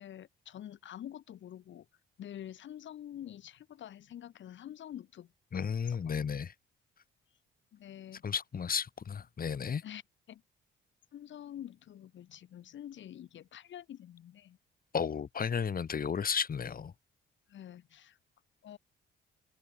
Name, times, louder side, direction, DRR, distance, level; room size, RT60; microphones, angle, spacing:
voice 1, 0.0-1.8 2.2-6.1 7.7-8.2 9.8-10.0 10.3-10.4 11.1-14.6 17.5-18.2 18.6-18.8, left 11 dB, 70° left, 6.5 m, -47 dB
voice 2, 5.5-6.5 8.2-9.8 14.9-16.9, left 6 dB, 45° left, 7.9 m, -33 dB
cardioid pair, 90°, 20 cm